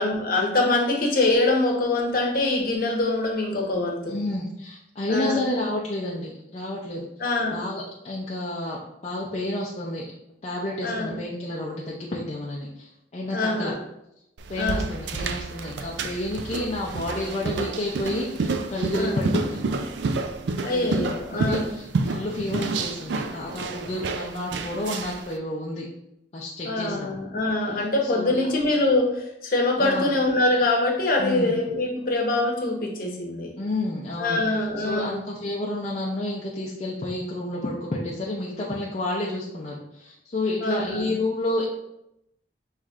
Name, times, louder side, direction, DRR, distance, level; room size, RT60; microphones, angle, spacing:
voice 1, 0.0-4.1 5.1-5.4 7.2-7.6 10.8-11.1 13.3-13.8 14.6-14.9 18.9-19.2 20.6-21.8 26.6-33.5 34.2-35.2 40.6-41.1, left 2 dB, 55° left, 0 dB, 0.9 m, -24 dB
voice 2, 4.1-7.1 7.5-10.1 10.4-13.7 14.5-19.8 20.6-25.9 26.3-27.1 28.0-28.4 29.8-30.1 31.2-31.5 33.6-41.7, left 1 dB, 40° left, -4 dB, 0.5 m, -30 dB
sound 1, 14.4-25.3, right 3 dB, 75° right, 0.4 m, -30 dB
5.8 x 3.2 x 2.4 m, 0.84 s
head